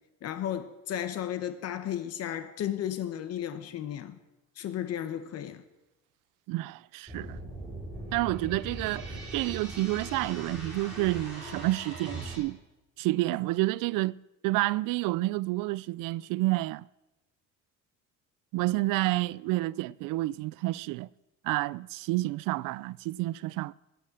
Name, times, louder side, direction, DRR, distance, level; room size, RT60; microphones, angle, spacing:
voice 1, 0.2-4.2 4.6-5.6, left 10 dB, 50° left, 1.0 m, -34 dB
voice 2, 6.5-7.4 8.1-12.6 13.0-14.1 14.4-16.9 18.5-21.1 21.4-23.7, right 19 dB, 85° right, 0.5 m, -29 dB
sound 1, 7.1-12.4, right 2 dB, 5° right, 6.3 m, -40 dB
20.0 x 8.8 x 7.8 m
cardioid pair, 170°, 31 cm